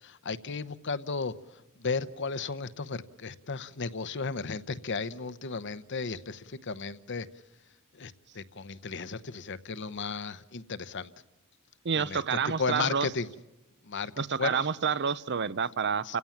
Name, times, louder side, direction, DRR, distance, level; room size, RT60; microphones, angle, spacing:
voice 1, 0.0-1.3 1.8-7.3 7.9-11.1 11.9-13.3 13.9-14.1 14.4-14.7 16.0-16.2, left 4 dB, 55° left, 16 dB, 0.9 m, -34 dB
voice 2, 11.8-13.1 14.2-16.2, right 6 dB, 50° right, 18 dB, 0.7 m, -29 dB
30.0 x 16.5 x 7.2 m, 1.1 s
head